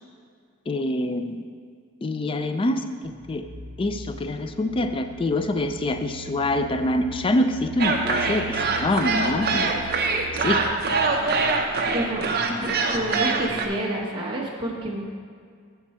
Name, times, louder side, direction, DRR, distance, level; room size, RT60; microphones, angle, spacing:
voice 1, 0.7-1.4 2.0-3.5 3.8-9.8 10.3-10.6 12.5-12.8, left 1 dB, 25° left, 8 dB, 0.4 m, -25 dB
sound 1, 3.0-10.9, right 5 dB, 70° right, 1.0 m, -42 dB
sound 2, 7.8-13.7, right 3 dB, 50° right, 0.7 m, -24 dB
voice 2, 11.9-12.2 12.6-15.0, right 1 dB, 25° right, -4 dB, 1.3 m, -29 dB
7.7 x 7.0 x 4.3 m, 2.1 s
head